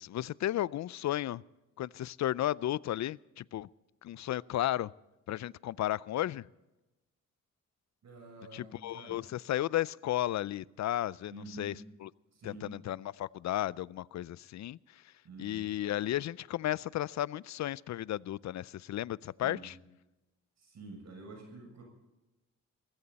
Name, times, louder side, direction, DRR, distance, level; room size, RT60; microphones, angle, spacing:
voice 1, 0.0-1.4 1.8-3.7 4.0-4.9 5.3-6.5 8.5-11.7 12.0-12.1 12.4-15.1 15.4-19.7, left 13 dB, 65° left, 22 dB, 0.5 m, -34 dB
voice 2, 8.0-9.2 11.3-11.8 12.3-12.7 15.2-15.7 19.4-19.7 20.6-21.8, right 2 dB, 65° right, 2 dB, 6.9 m, -48 dB
20.5 x 15.5 x 4.1 m, 1.0 s
cardioid pair, 75°, 30 cm